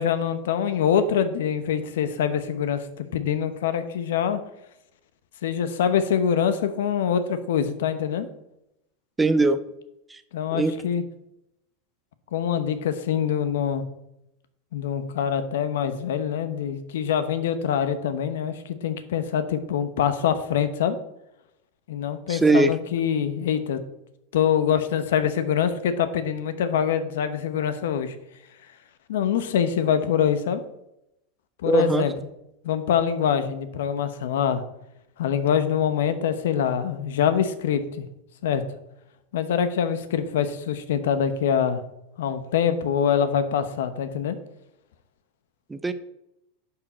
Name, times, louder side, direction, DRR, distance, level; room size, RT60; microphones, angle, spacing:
voice 1, 0.0-4.4 5.4-8.3 10.3-11.0 12.3-13.8 14.7-21.0 21.9-23.8 24.3-28.1 29.1-30.6 31.6-32.1 32.6-34.6 35.2-38.1 38.4-38.6 39.3-41.8 42.2-44.4, left 8 dB, 85° left, 11 dB, 0.9 m, -24 dB
voice 2, 9.2-9.6 10.1-10.2 10.5-10.7 22.3-22.8 31.6-32.1 45.7-45.9, right 3 dB, 10° right, 11 dB, 0.4 m, -20 dB
10.5 x 4.8 x 4.3 m, 0.84 s
supercardioid pair, 150°, 0 cm